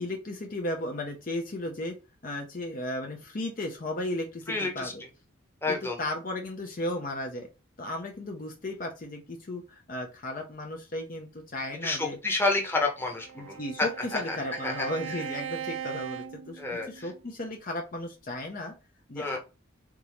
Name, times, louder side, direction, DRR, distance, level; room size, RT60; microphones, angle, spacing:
voice 1, 0.0-2.0 2.2-5.0 5.7-7.5 7.8-12.2 13.4-18.7 19.1-19.4, left 1 dB, 40° left, 3 dB, 0.6 m, -35 dB
voice 2, 4.5-4.9 5.6-6.0 11.8-14.9 16.6-17.1 19.2-19.4, left 3 dB, 10° left, 1 dB, 0.9 m, -30 dB
Bowed string instrument, 12.7-17.2, right 9 dB, 75° right, 0.5 m, -40 dB
3.9 x 3.5 x 3.0 m, 0.30 s
head